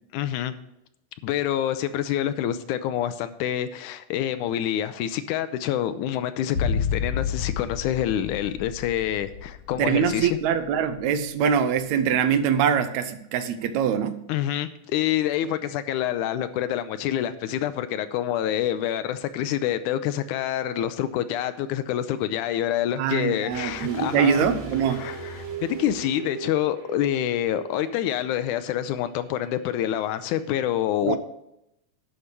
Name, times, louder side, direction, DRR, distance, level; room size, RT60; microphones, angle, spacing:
voice 1, 0.1-0.5 1.2-10.4 14.3-24.5 24.9-31.2, left 11 dB, 85° left, 2.0 m, -27 dB
sound 1, 6.5-10.8 11.0-11.1, left 6 dB, 65° left, 1.8 m, -30 dB
voice 2, 9.8-14.2 23.0-25.1 31.0-31.2, right 7 dB, 80° right, 1.8 m, -23 dB
sound 2, 23.5-28.3 28.6-28.7, right 5 dB, 30° right, 1.4 m, -38 dB
11.5 x 5.0 x 6.7 m
omnidirectional pair, 3.5 m